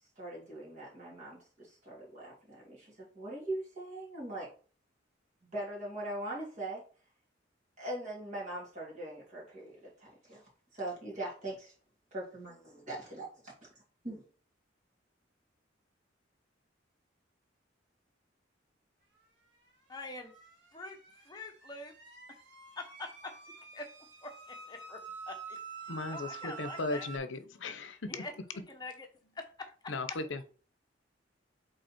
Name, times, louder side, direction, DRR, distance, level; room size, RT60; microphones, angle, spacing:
voice 1, 0.2-4.5 5.5-6.8 7.8-10.4 10.7-11.7 12.1-12.5 12.9-13.5 14.0-14.3, right 1 dB, 40° right, -5 dB, 2.7 m, -41 dB
sound 1, 19.6-27.2, right 6 dB, 65° right, 2.7 m, -48 dB
voice 2, 19.9-20.3 20.7-21.9 22.3-22.4 22.7-23.9 24.2-25.6 26.1-27.1 28.1-29.1 29.3-30.2, left 3 dB, 20° left, 3 dB, 1.0 m, -45 dB
voice 3, 25.9-28.1 29.9-30.5, left 3 dB, 75° left, 11 dB, 0.7 m, -37 dB
5.3 x 4.1 x 4.4 m, 0.39 s
head